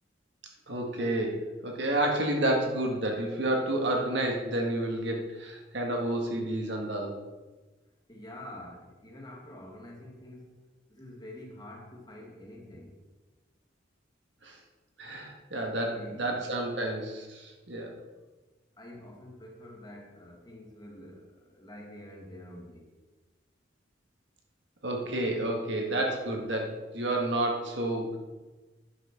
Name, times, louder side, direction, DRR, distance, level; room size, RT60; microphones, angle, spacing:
voice 1, 0.7-7.2 14.4-14.6 15.0-18.0 24.8-28.2, right 1 dB, 65° right, 1 dB, 1.7 m, -30 dB
voice 2, 8.1-10.6 10.9-12.9 15.9-16.4 18.8-22.9, left 1 dB, 20° left, -1 dB, 1.9 m, -47 dB
10.5 x 5.9 x 5.9 m, 1.2 s
head